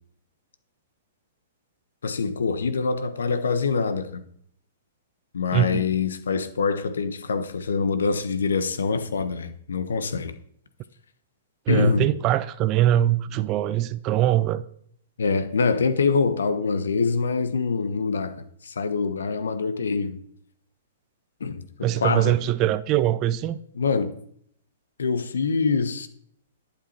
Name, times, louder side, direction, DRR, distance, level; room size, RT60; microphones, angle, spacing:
voice 1, 2.0-4.2 5.3-10.3 11.7-12.1 15.2-20.2 21.4-22.4 23.7-24.1 25.0-26.1, left 4 dB, 70° left, 1.2 m, -25 dB
voice 2, 5.5-5.8 11.7-14.6 21.8-23.6, right 13 dB, 30° right, 0.6 m, -22 dB
11.5 x 8.6 x 4.4 m
figure-of-eight pair, 110°, 0 cm